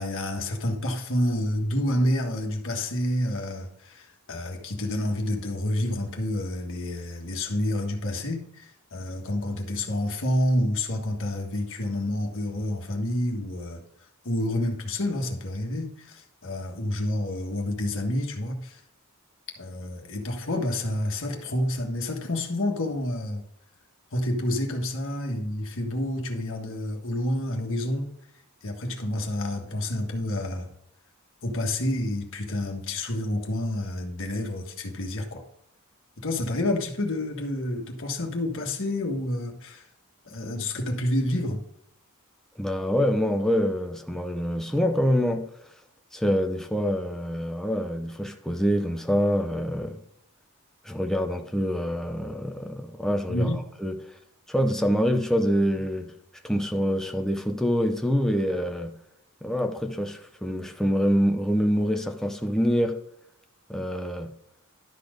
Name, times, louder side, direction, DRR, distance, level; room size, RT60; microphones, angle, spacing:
voice 1, 0.0-13.8 14.2-18.8 19.6-23.4 24.1-28.1 28.6-30.7 31.4-35.4 36.2-39.9 40.2-41.6 53.3-53.6, left 1 dB, 65° left, 1.5 m, -29 dB
voice 2, 42.6-45.4 46.1-50.0 50.8-53.9 54.5-56.1 56.4-58.9 59.4-63.0 63.7-64.3, equal, ahead, 0.8 m, -25 dB
11.5 x 4.3 x 5.1 m
head